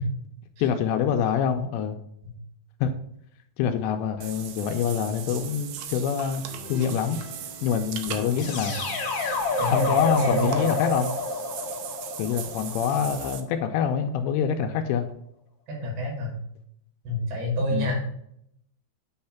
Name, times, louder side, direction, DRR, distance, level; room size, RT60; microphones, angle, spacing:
voice 1, 0.6-2.0 2.8-2.9 3.6-6.4 6.7-7.2 7.6-8.8 9.7-11.1 12.2-15.1 17.7-17.9, left 7 dB, 80° left, 5 dB, 2.7 m, -25 dB
Water / Bathtub (filling or washing), 4.2-13.4, right 10 dB, 80° right, 2.4 m, -39 dB
sound 1, 6.5-10.6, left 3 dB, 40° left, 0.6 m, -45 dB
sound 2, 8.4-13.3, left 3 dB, 60° left, 1.6 m, -29 dB
voice 2, 9.6-10.6 15.7-16.4 17.0-18.0, equal, 60° right, -1 dB, 4.1 m, -28 dB
9.4 x 3.2 x 5.7 m, 0.72 s
omnidirectional pair, 5.3 m